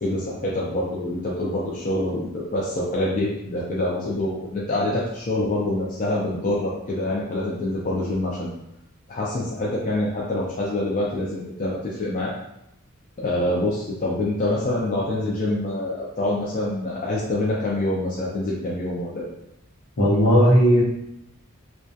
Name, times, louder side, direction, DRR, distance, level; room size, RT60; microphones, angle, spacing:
voice 1, 0.0-8.5 9.1-12.3 13.2-19.3, left 1 dB, 35° left, -5 dB, 0.3 m, -26 dB
voice 2, 20.0-20.8, equal, 70° left, -4 dB, 0.7 m, -16 dB
2.2 x 2.2 x 2.6 m, 0.83 s
head